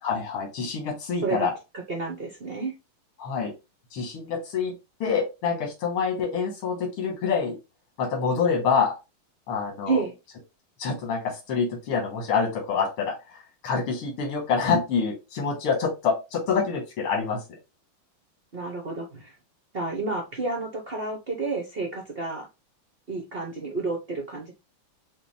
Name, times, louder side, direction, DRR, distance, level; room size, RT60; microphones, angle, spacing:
voice 1, 0.0-1.5 3.2-3.5 3.9-4.7 5.0-7.6 8.0-8.9 9.5-10.0 10.8-13.1 13.6-17.4, left 5 dB, 90° left, 0 dB, 2.2 m, -26 dB
voice 2, 1.9-2.7 9.9-10.1 18.5-19.3 19.7-22.5 23.1-24.5, right 3 dB, 70° right, 1 dB, 0.5 m, -30 dB
5.7 x 2.2 x 3.3 m, 0.26 s
omnidirectional pair, 2.3 m